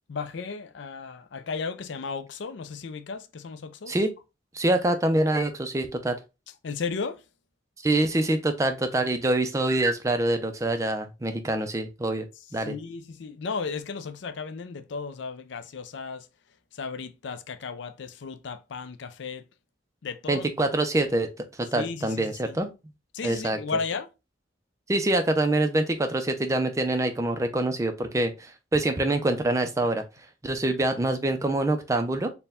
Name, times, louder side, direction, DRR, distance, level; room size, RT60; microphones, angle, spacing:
voice 1, 0.1-4.0 6.6-7.2 12.7-16.3 16.7-19.4 20.0-20.5 21.7-22.6 23.1-24.1, left 5 dB, 65° left, 0.4 m, -34 dB
voice 2, 4.5-6.2 7.8-12.3 12.5-12.7 20.3-21.3 21.6-22.7 23.2-23.6 24.9-30.0 30.4-32.3, right 2 dB, 15° right, 0.4 m, -25 dB
4.4 x 2.2 x 3.5 m
head